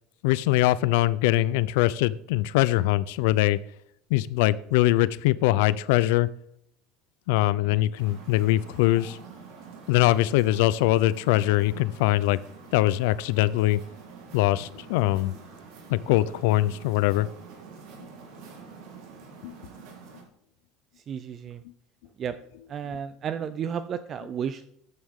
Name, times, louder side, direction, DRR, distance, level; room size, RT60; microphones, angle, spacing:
voice 1, 0.2-3.6 4.1-6.3 7.3-9.2 9.9-12.4 12.7-13.8 14.3-15.3 15.9-17.3 19.4-19.5, left 16 dB, 80° left, 18 dB, 0.4 m, -22 dB
sound 1, 8.0-20.2, right 5 dB, 60° right, 3.5 m, -47 dB
voice 2, 21.1-21.6 22.2-22.4 22.7-24.7, right 8 dB, 25° right, 13 dB, 0.4 m, -33 dB
14.5 x 9.5 x 3.6 m, 0.72 s
cardioid pair, 175°, 0 cm